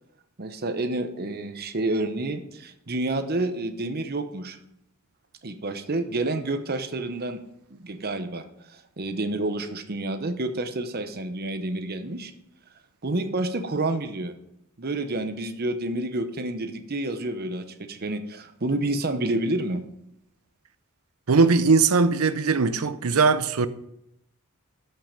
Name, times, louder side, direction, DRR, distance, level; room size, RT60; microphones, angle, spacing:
voice 1, 0.4-4.6 5.4-7.4 7.7-8.4 8.7-12.3 13.0-14.3 14.8-19.8, right 2 dB, 45° right, 0.9 m, -29 dB
voice 2, 21.3-23.7, right 4 dB, 85° right, 0.6 m, -20 dB
13.0 x 5.7 x 5.1 m
head